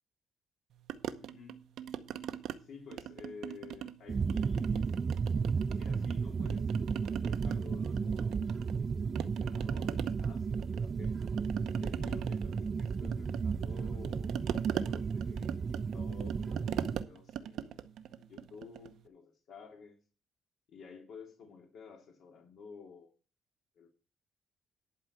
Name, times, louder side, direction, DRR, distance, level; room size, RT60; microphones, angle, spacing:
sound 1, 0.9-2.6 2.9-4.0 4.3-6.2 6.5-8.9 9.1-19.0, right 10 dB, 75° right, 0.8 m, -40 dB
voice 1, 1.2-1.5 2.6-5.0 5.7-6.7 7.0-8.9 9.2-11.2 11.8-17.9 18.2-20.0 20.7-23.1 23.8-23.9, left 5 dB, 70° left, 1 dB, 2.5 m, -52 dB
sound 2, 4.1-17.0, right 5 dB, 40° right, 0.5 m, -34 dB
11.5 x 4.6 x 7.2 m, 0.36 s
cardioid pair, 90°, 0 cm